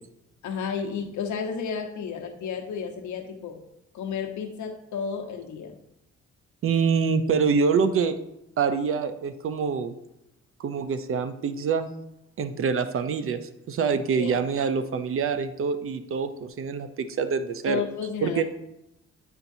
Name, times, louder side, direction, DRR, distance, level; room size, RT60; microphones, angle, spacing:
voice 1, 0.4-3.6 3.9-5.7 13.9-14.4 17.7-18.4, left 6 dB, 75° left, 3 dB, 1.0 m, -32 dB
voice 2, 6.6-8.2 8.6-9.9 10.6-11.9 12.4-17.8 18.2-18.4, right 5 dB, 45° right, 11 dB, 0.5 m, -25 dB
9.3 x 4.4 x 2.7 m, 0.84 s
cardioid pair, 90°, 30 cm